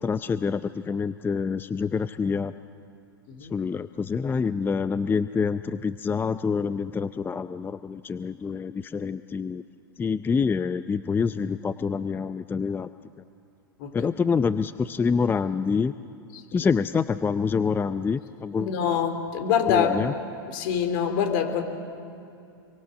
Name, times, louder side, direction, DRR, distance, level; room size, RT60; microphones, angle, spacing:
voice 1, 0.0-2.5 3.4-9.6 10.0-12.9 13.9-15.9 16.5-18.8 19.7-20.1, left 5 dB, 15° left, 13 dB, 0.6 m, -26 dB
voice 2, 18.6-20.1 20.5-21.6, left 7 dB, 60° left, 7 dB, 3.3 m, -25 dB
27.5 x 23.5 x 6.6 m, 2.5 s
hypercardioid pair, 95°, 12 cm